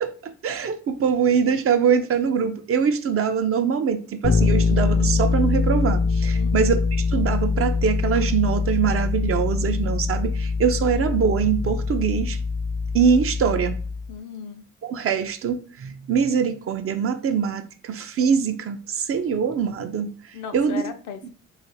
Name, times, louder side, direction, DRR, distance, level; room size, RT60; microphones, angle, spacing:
voice 1, 0.0-12.4 12.9-13.8 14.8-20.1 20.5-20.9, right 6 dB, 50° right, 0.5 m, -23 dB
Bass guitar, 4.2-14.1, left 4 dB, 30° left, 0.4 m, -23 dB
voice 2, 6.3-6.7 14.1-14.6 20.3-21.3, left 7 dB, 70° left, 0.6 m, -36 dB
2.9 x 2.4 x 4.1 m
cardioid pair, 90°, 30 cm